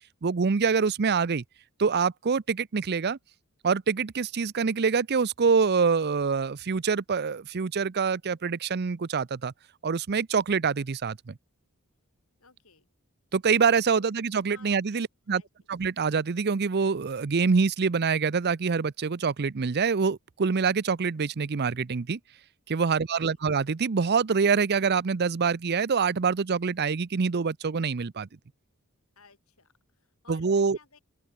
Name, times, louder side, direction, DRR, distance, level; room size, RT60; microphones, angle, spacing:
voice 1, 0.2-1.4 1.8-3.2 3.6-9.5 9.8-11.3 13.3-15.4 15.7-22.2 22.7-28.3 30.3-30.8, right 5 dB, 50° right, 0.6 m, -25 dB
voice 2, 12.4-12.9 13.8-14.1 14.5-15.5 22.9-23.4 29.2-31.0, left 4 dB, 70° left, 7.0 m, -57 dB
open air
head